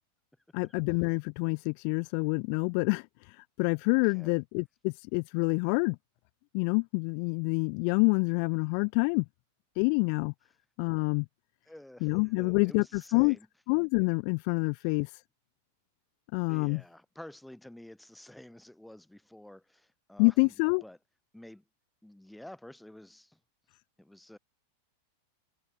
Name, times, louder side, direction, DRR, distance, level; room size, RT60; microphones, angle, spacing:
voice 1, 0.5-6.0 6.5-9.3 9.8-10.3 10.8-11.3 12.0-13.4 13.7-15.2 16.3-16.8 20.2-20.8, left 40 dB or more, 45° left, 0.4 m, -27 dB
voice 2, 4.0-4.3 11.7-13.5 16.5-20.5 20.8-21.0 21.3-21.6 22.0-23.4 24.0-24.4, left 1 dB, 5° left, 3.5 m, -50 dB
figure-of-eight pair, 90°, 0 cm